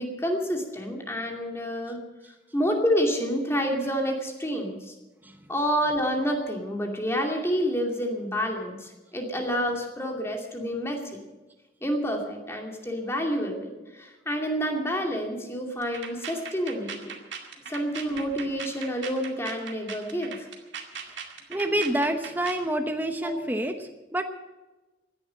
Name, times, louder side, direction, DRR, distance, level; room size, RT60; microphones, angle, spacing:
voice 1, 0.0-2.0 2.5-4.9 5.5-11.0 11.8-17.1 17.7-20.5 23.2-23.3, equal, 15° left, 1 dB, 2.5 m, -28 dB
sound 1, 15.8-22.7, right 6 dB, 80° right, 2.2 m, -39 dB
voice 2, 21.5-24.2, right 1 dB, 10° right, 6 dB, 1.0 m, -28 dB
16.0 x 10.5 x 7.7 m, 1.1 s
head